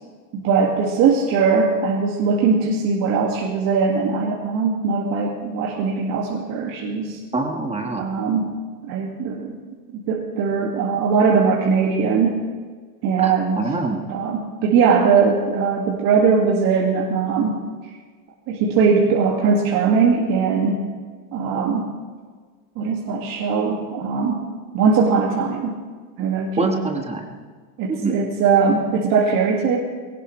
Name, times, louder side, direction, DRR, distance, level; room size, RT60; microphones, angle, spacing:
voice 1, 0.3-7.2 8.0-8.5 8.8-9.5 9.9-12.4 13.0-13.6 14.1-17.6 18.5-20.8 21.3-21.9 22.8-24.4 24.7-25.8 26.2-26.7 27.8-29.8, right 5 dB, 45° right, -3 dB, 2.0 m, -20 dB
voice 2, 7.3-8.0 13.2-14.0 26.6-27.3 27.9-28.2, right 3 dB, 15° right, 3 dB, 1.3 m, -24 dB
19.5 x 18.0 x 3.2 m, 1.5 s
supercardioid pair, 140°, 47 cm